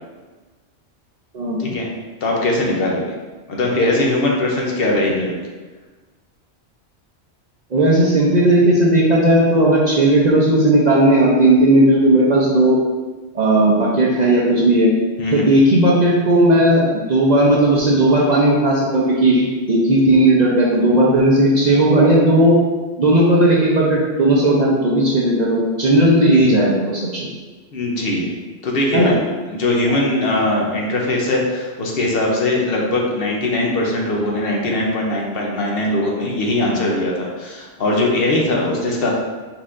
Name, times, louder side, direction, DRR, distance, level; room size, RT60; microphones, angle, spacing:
voice 1, 2.2-3.1 3.5-5.3 15.2-15.5 26.3-26.5 27.7-28.3 28.6-29.2 29.5-39.1, left 1 dB, 60° left, -1 dB, 0.9 m, -20 dB
voice 2, 7.7-12.8 13.3-14.9 15.3-22.6 23.0-27.3 28.9-29.1 29.9-30.0 33.2-33.3, right 1 dB, 50° right, -4 dB, 0.6 m, -15 dB
4.1 x 4.1 x 2.5 m, 1.3 s
omnidirectional pair, 1.1 m